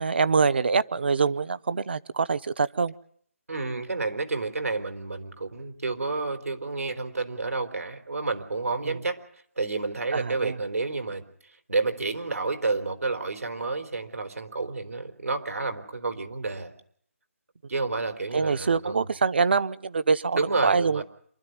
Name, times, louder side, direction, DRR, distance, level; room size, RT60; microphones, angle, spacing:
voice 1, 0.0-2.9 8.8-9.0 10.1-10.6 18.3-21.0, right 5 dB, 45° right, 15 dB, 0.9 m, -25 dB
voice 2, 3.5-9.2 9.6-11.2 11.7-16.7 17.7-19.1 20.3-21.0, right 3 dB, 85° right, 7 dB, 4.3 m, -30 dB
27.5 x 13.0 x 9.5 m, 0.65 s
hypercardioid pair, 175°, 8 cm